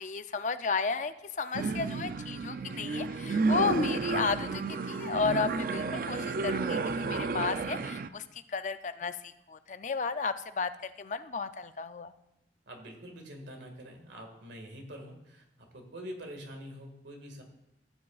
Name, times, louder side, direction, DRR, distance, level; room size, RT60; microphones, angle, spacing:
voice 1, 0.0-12.1, left 4 dB, 45° left, 11 dB, 0.4 m, -33 dB
sound 1, 1.5-8.1, right 4 dB, 50° right, 0.4 m, -32 dB
voice 2, 12.7-17.4, equal, 85° right, 3 dB, 1.9 m, -45 dB
16.0 x 7.5 x 2.4 m, 0.91 s
head